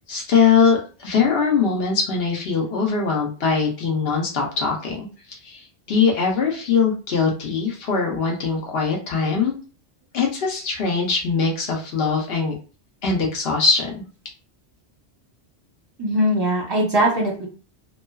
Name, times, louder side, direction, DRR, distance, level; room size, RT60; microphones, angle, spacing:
voice 1, 0.1-5.6 5.9-9.5 10.1-12.5 13.0-14.0, left 5 dB, 65° left, 0 dB, 0.9 m, -21 dB
voice 2, 16.0-17.5, right 1 dB, 25° right, -2 dB, 0.7 m, -20 dB
2.3 x 2.3 x 2.2 m, 0.36 s
omnidirectional pair, 1.1 m